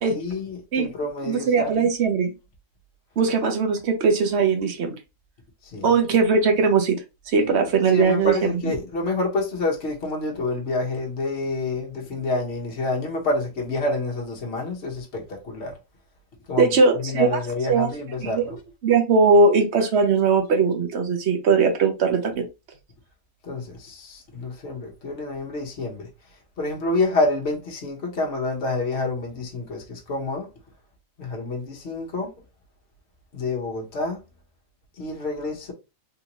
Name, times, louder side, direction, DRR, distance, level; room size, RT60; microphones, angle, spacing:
voice 1, 0.1-1.9 5.7-5.9 7.9-15.7 16.5-18.6 23.4-26.1 26.6-30.5 31.2-32.3 33.3-34.2 35.0-35.7, left 2 dB, 55° left, 1.3 m, -28 dB
voice 2, 1.2-2.3 3.2-5.0 5.8-7.0 7.3-8.7 16.6-17.4 17.7-17.9 18.2-18.6 18.8-22.4, right 4 dB, 60° right, 1.0 m, -20 dB
3.6 x 2.7 x 2.9 m
omnidirectional pair, 1.4 m